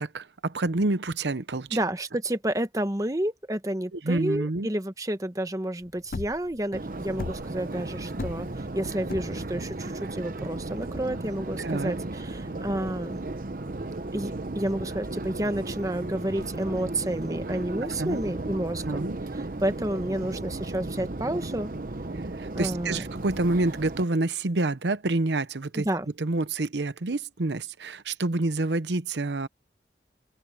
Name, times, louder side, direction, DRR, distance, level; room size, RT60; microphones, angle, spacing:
voice 1, 0.0-1.8 3.9-4.7 11.6-11.9 17.8-18.2 18.8-19.2 22.1-25.9 26.2-29.5, right 2 dB, 85° right, 0.9 m, -28 dB
voice 2, 1.7-13.2 14.1-19.1 19.3-21.7 22.5-23.0 25.7-26.1, right 1 dB, 20° right, 1.1 m, -30 dB
sound 1, 5.8-11.8, left 3 dB, 55° left, 0.5 m, -38 dB
Subway metro underground, 6.7-24.0, right 2 dB, 50° right, 0.9 m, -35 dB
sound 2, 12.4-15.4 15.7-22.2, equal, 75° left, 3.7 m, -57 dB
open air
head